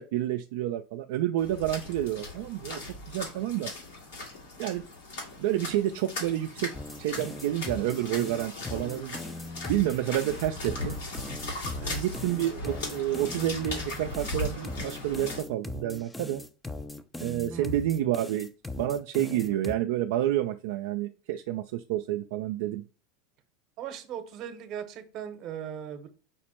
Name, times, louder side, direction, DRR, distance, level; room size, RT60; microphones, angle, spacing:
voice 1, 0.0-2.8 3.1-3.7 4.6-4.8 5.4-6.7 7.0-9.2 9.7-11.0 11.8-16.4 17.2-18.5 18.8-22.8, right 13 dB, 75° right, 5 dB, 0.3 m, -29 dB
sound 1, 1.4-15.4, left 2 dB, 80° left, 1.9 m, -38 dB
sound 2, 6.7-19.7, left 2 dB, 10° left, 0.4 m, -40 dB
voice 2, 17.5-17.8 23.8-26.1, right 9 dB, 50° right, 9 dB, 0.8 m, -38 dB
5.2 x 2.1 x 4.2 m, 0.35 s
supercardioid pair, 105°, 0 cm